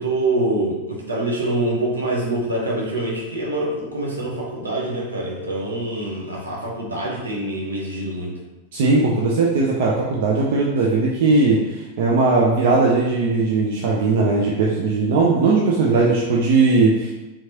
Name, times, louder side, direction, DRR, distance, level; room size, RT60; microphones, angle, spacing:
voice 1, 0.0-8.3, right 1 dB, 75° right, -3 dB, 1.1 m, -25 dB
voice 2, 8.7-17.1, right 3 dB, 55° right, -3 dB, 0.6 m, -18 dB
4.5 x 3.7 x 2.9 m, 1.1 s
figure-of-eight pair, 90°, 0 cm